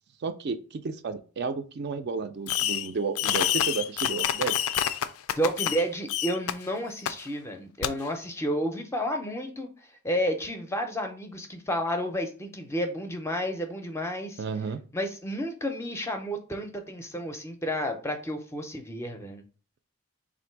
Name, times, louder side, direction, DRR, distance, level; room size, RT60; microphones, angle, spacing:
voice 1, 0.2-4.6 14.4-14.8, right 4 dB, 50° right, 9 dB, 0.4 m, -32 dB
Fireworks, 2.5-2.9 3.2-5.8 6.1-6.5 7.1-7.2 7.8-7.9, left 10 dB, 80° left, 0.3 m, -27 dB
voice 2, 5.4-9.7 10.0-14.4 14.9-19.4, equal, 15° left, 5 dB, 0.5 m, -31 dB
3.6 x 2.5 x 4.5 m, 0.37 s
head